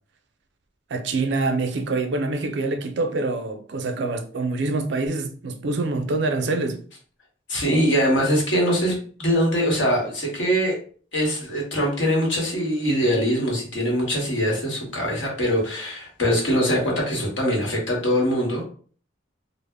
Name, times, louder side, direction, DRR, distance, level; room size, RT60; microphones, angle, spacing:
voice 1, 0.9-6.8, right 3 dB, 65° right, 0.4 m, -25 dB
voice 2, 7.5-10.7 11.1-18.6, equal, 75° left, 1.1 m, -22 dB
2.0 x 2.0 x 3.4 m
head